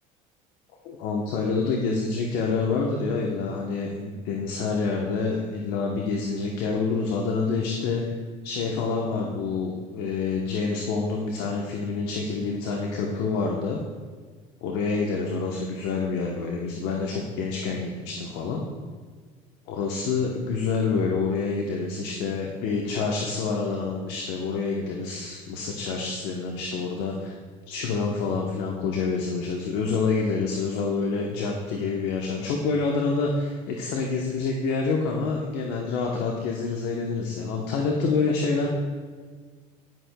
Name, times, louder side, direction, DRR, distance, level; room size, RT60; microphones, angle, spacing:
voice 1, 0.8-8.0 8.4-13.8 14.6-18.6 19.7-27.3 27.7-38.7, left 4 dB, 75° left, 0 dB, 1.0 m, -27 dB
11.0 x 10.0 x 2.3 m, 1.5 s
supercardioid pair, 90°, 17 cm